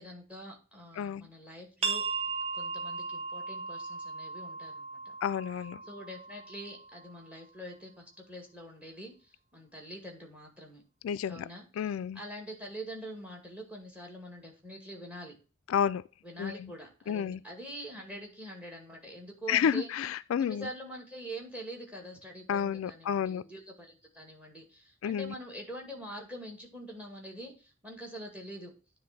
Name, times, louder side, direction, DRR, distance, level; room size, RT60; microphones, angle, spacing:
voice 1, 0.0-2.0 2.5-5.0 5.8-10.8 11.3-15.4 16.2-19.9 20.4-28.7, right 1 dB, 5° right, 2.1 m, -45 dB
voice 2, 1.0-1.3 5.2-5.8 11.0-11.5 11.8-12.2 15.7-16.0 16.4-16.7 17.1-17.4 19.5-20.7 22.5-23.4 25.0-25.3, left 8 dB, 75° left, 0.3 m, -30 dB
sound 1, 1.8-7.2, right 4 dB, 35° right, 1.2 m, -37 dB
9.6 x 3.4 x 5.8 m
head